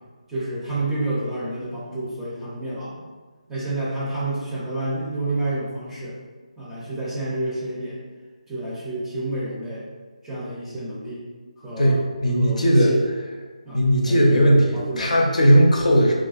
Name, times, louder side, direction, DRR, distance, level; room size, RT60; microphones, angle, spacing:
voice 1, 0.3-3.0 3.5-6.1 6.6-8.0 8.5-9.8 10.2-11.2 11.6-11.9 12.3-13.0 13.7-13.8 14.0-15.3, right 2 dB, 5° right, -10 dB, 0.5 m, -29 dB
voice 2, 11.8-13.0 13.7-16.1, equal, 70° left, 0 dB, 0.5 m, -17 dB
2.4 x 2.1 x 2.4 m, 1.4 s
figure-of-eight pair, 155°, 4 cm